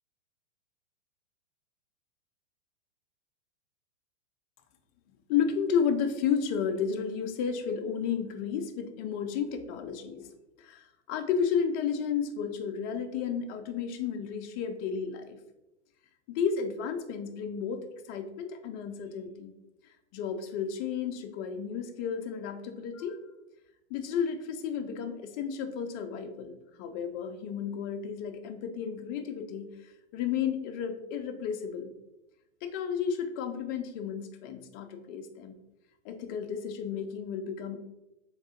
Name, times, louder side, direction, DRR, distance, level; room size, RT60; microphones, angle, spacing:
voice 1, 5.3-15.4 16.3-19.5 20.1-23.2 23.9-31.9 32.6-35.6 36.0-37.8, left 7 dB, 25° left, 6 dB, 0.4 m, -32 dB
3.5 x 2.6 x 3.7 m, 0.92 s
hypercardioid pair, 110°, 35 cm